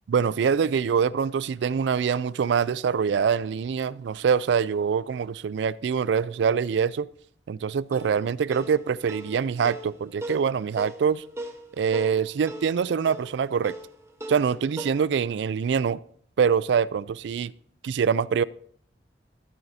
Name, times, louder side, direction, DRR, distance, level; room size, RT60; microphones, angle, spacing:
voice 1, 0.1-7.1 7.5-11.2 11.8-13.8 14.3-16.0 16.4-17.5 17.8-18.4, right 6 dB, 75° right, 20 dB, 0.3 m, -24 dB
sound 1, 7.9-14.9, right 1 dB, 15° right, 1.0 m, -39 dB
14.5 x 8.9 x 2.7 m, 0.62 s
head